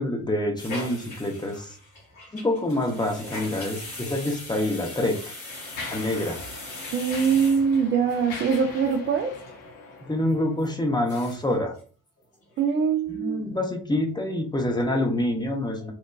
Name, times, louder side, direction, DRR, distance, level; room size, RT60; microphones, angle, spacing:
voice 1, 0.0-1.8 2.3-5.3 5.9-6.4 10.1-11.7 13.1-15.9, left 1 dB, 10° left, 1 dB, 0.6 m, -26 dB
sound 1, 0.6-8.1 8.5-8.6 8.9-9.0 9.3-9.6 10.0-10.1 10.6-10.7 11.0-11.5 11.8-11.9 12.2-12.7 13.1-13.2, left 2 dB, 85° left, 1.2 m, -40 dB
Mechanisms, 4.2-4.3 5.0-10.7, left 3 dB, 55° left, 0.8 m, -41 dB
voice 2, 6.9-9.3 12.6-13.4, right 6 dB, 30° right, 3 dB, 0.4 m, -23 dB
2.9 x 2.2 x 2.2 m, 0.41 s
figure-of-eight pair, 45°, 40 cm